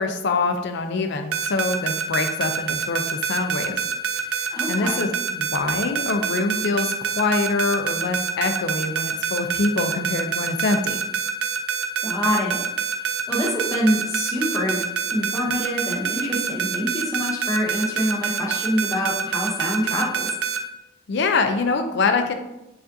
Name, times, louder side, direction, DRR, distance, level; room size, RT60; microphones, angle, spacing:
voice 1, 0.0-3.8 4.4-11.0 21.1-22.3, left 3 dB, 55° left, 6 dB, 0.4 m, -24 dB
sound 1, 1.3-20.6, right 7 dB, 80° right, 0.4 m, -26 dB
voice 2, 4.5-5.0 12.0-12.7 13.0-14.8 15.1-20.3, equal, 15° left, -3 dB, 0.7 m, -25 dB
4.9 x 2.5 x 2.6 m, 0.94 s
head